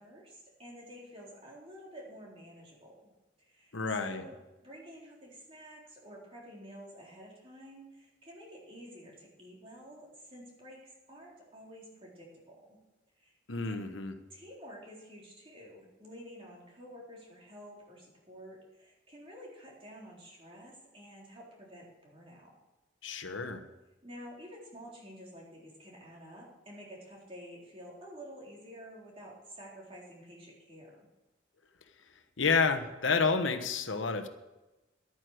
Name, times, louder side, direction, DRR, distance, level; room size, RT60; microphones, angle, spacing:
voice 1, 0.0-3.1 3.4-4.3 4.6-12.8 13.2-13.3 13.6-13.7 14.3-22.5 24.0-31.1, equal, 30° right, -3 dB, 3.8 m, -50 dB
voice 2, 3.7-4.2 13.5-14.2 23.0-23.6 32.4-34.3, left 4 dB, 90° left, 8 dB, 1.1 m, -30 dB
12.0 x 9.2 x 6.4 m, 1.0 s
head